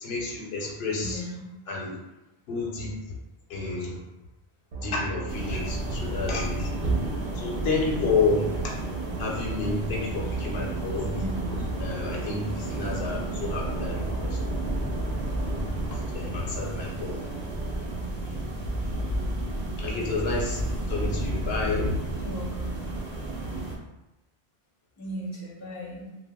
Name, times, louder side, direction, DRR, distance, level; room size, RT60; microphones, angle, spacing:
voice 1, 0.0-1.2 1.7-2.0 2.5-2.9 3.5-4.0 4.8-6.7 7.4-8.8 9.2-11.1 11.8-14.5 16.1-17.2 19.8-22.0, left 3 dB, 70° left, -2 dB, 0.8 m, -30 dB
voice 2, 1.0-1.5 11.0-11.4 15.9-16.0 22.2-22.8 25.0-26.0, equal, 20° left, -5 dB, 0.5 m, -37 dB
sound 1, 4.7-18.0, right 3 dB, 75° right, 0.8 m, -37 dB
sound 2, 5.3-23.7, right 1 dB, 50° right, 0.6 m, -32 dB
2.2 x 2.1 x 3.4 m, 0.94 s
omnidirectional pair, 1.1 m